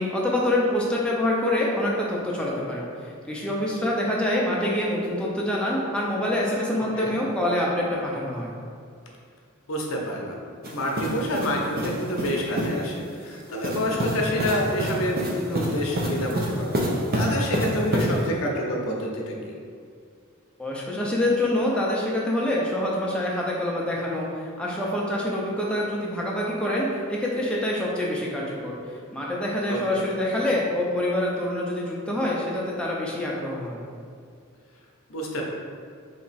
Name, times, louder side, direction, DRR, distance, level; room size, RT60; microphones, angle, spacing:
voice 1, 0.0-8.5 20.6-28.8 29.1-33.8, left 1 dB, 5° left, -4 dB, 0.5 m, -26 dB
voice 2, 6.8-7.1 9.7-10.4 10.7-16.8 17.1-19.6 29.7-30.0 35.1-35.4, equal, 80° left, -1 dB, 0.7 m, -28 dB
sound 1, 10.6-12.8 13.6-18.3, equal, 45° right, 0.6 m, -28 dB
3.4 x 2.9 x 4.1 m, 2.3 s
head